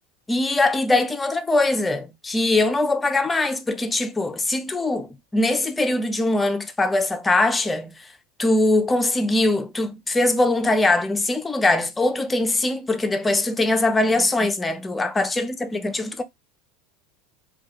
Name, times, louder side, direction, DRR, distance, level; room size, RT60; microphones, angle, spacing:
voice 1, 0.3-7.9 8.4-16.2, left 2 dB, 15° left, 0.5 m, -22 dB
2.3 x 2.2 x 2.7 m
hypercardioid pair, 85°, 0 cm